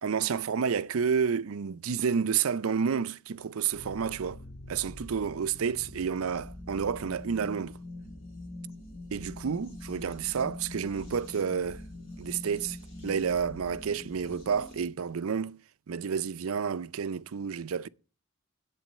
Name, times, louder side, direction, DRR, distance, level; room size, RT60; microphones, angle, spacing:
voice 1, 0.0-4.4 4.7-7.8 9.1-11.8 12.2-12.8 13.0-15.6 15.9-17.9, right 6 dB, 75° right, 0.5 m, -30 dB
sound 1, 3.7-14.9, left 1 dB, 65° left, 5.8 m, -44 dB
9.1 x 8.4 x 7.3 m
head